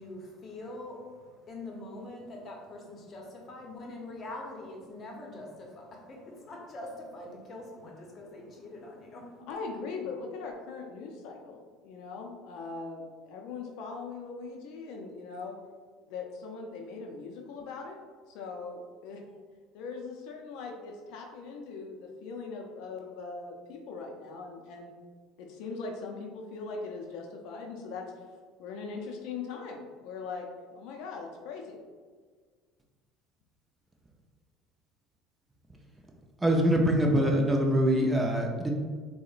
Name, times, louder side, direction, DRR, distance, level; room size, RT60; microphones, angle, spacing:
voice 1, 0.0-9.4, left 2 dB, 40° left, 0 dB, 0.7 m, -44 dB
voice 2, 9.5-15.6 16.1-18.0 18.3-19.4 19.7-24.9 25.4-31.8, left 4 dB, 70° left, 1 dB, 0.4 m, -40 dB
voice 3, 36.4-38.7, equal, 15° right, 1 dB, 0.4 m, -24 dB
3.6 x 2.0 x 2.4 m, 1.5 s
supercardioid pair, 95°, 0 cm